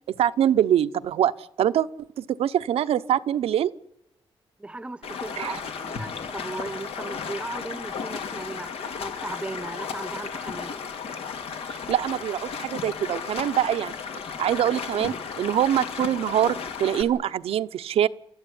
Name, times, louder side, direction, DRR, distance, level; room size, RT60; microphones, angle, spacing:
voice 1, 0.2-1.3 1.6-1.9 2.2-3.7 5.4-5.6 11.9-13.9 14.4-18.1, right 10 dB, 90° right, 0.8 m, -24 dB
voice 2, 4.6-8.7 9.0-10.8, right 2 dB, 10° right, 0.8 m, -37 dB
Stream, 5.0-17.0, left 6 dB, 85° left, 2.3 m, -34 dB
29.0 x 13.5 x 10.0 m
wide cardioid pair, 145°, 10 cm